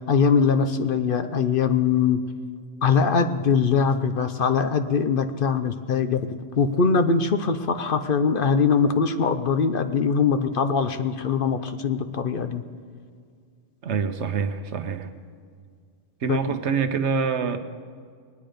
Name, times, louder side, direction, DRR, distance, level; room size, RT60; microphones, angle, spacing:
voice 1, 0.1-2.2 2.8-6.2 6.6-12.6 16.3-16.6, left 5 dB, 55° left, 9 dB, 0.8 m, -22 dB
voice 2, 13.8-15.1 16.2-17.6, right 5 dB, 80° right, 9 dB, 1.2 m, -25 dB
21.0 x 9.5 x 5.1 m, 2.1 s
omnidirectional pair, 1.2 m